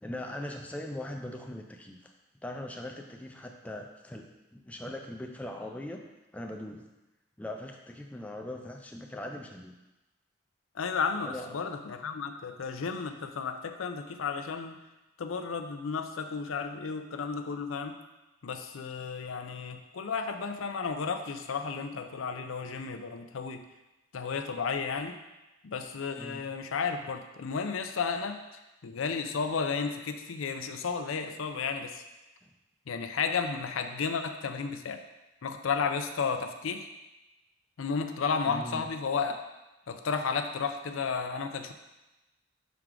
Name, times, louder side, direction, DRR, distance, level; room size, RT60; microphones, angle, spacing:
voice 1, 0.0-2.1 2.4-6.0 6.3-6.9 7.4-9.8 11.2-11.6 26.2-26.4 32.4-32.5 38.5-38.9, left 1 dB, 5° left, 2 dB, 0.4 m, -40 dB
voice 2, 10.8-14.8 15.2-18.0 18.4-23.6 24.1-25.1 25.6-28.4 28.8-32.0 32.9-35.0 35.4-36.9 37.8-39.4 39.9-41.7, left 5 dB, 85° left, 7 dB, 0.5 m, -33 dB
6.0 x 4.6 x 3.7 m, 1.0 s
head